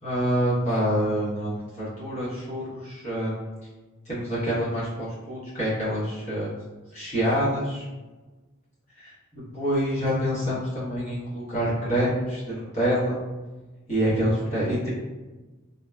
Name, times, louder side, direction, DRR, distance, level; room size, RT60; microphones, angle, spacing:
voice 1, 0.0-3.5 4.1-6.5 6.9-7.8 9.0-13.2 13.9-14.9, equal, 35° left, -10 dB, 1.0 m, -26 dB
2.8 x 2.2 x 2.3 m, 1.2 s
head